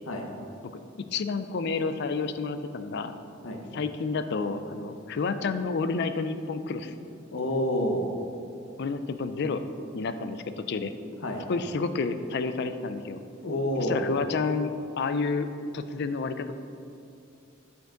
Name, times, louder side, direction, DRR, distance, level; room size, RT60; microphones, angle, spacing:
voice 1, 1.1-3.2 3.7-6.9 8.8-9.6 9.9-10.9 11.5-13.2 13.9-15.5 15.7-16.5, left 4 dB, 55° left, 10 dB, 0.4 m, -30 dB
voice 2, 7.3-8.0 11.2-11.4 13.4-14.0, left 1 dB, 75° left, 2 dB, 1.0 m, -28 dB
9.0 x 5.3 x 3.8 m, 2.6 s
head